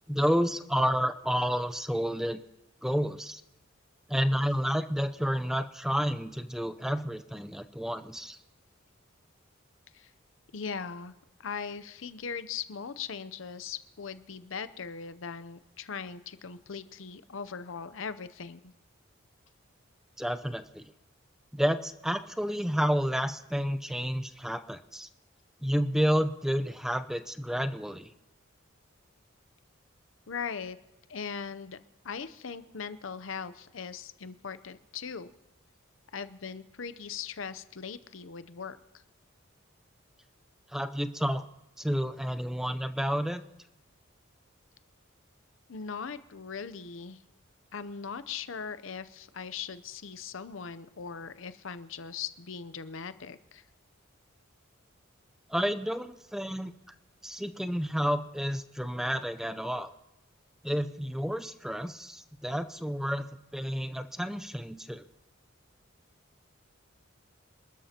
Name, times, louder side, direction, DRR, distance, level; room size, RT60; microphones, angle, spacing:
voice 1, 0.1-2.4 2.8-3.4 4.1-8.4 20.2-20.8 21.5-25.1 25.6-28.1 40.7-41.4 41.8-43.4 55.5-56.7 57.2-59.9 60.6-63.3 63.5-65.0, equal, ahead, 11 dB, 0.6 m, -30 dB
voice 2, 10.5-11.1 11.4-18.7 30.3-30.8 31.1-31.8 32.0-35.3 36.1-38.8 45.7-47.2 47.7-53.6, left 6 dB, 75° left, 13 dB, 0.7 m, -39 dB
27.0 x 13.0 x 2.9 m, 0.94 s
head